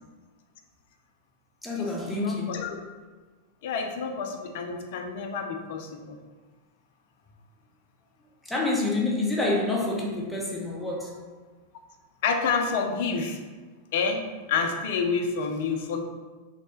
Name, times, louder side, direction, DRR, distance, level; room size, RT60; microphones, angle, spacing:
voice 1, 1.6-2.6 8.5-11.2, left 2 dB, 5° left, -3 dB, 0.6 m, -28 dB
voice 2, 2.2-2.7 3.6-6.2 12.2-13.4 13.9-16.0, left 5 dB, 50° left, 4 dB, 0.3 m, -28 dB
3.2 x 2.1 x 3.0 m, 1.4 s
figure-of-eight pair, 90°, 0 cm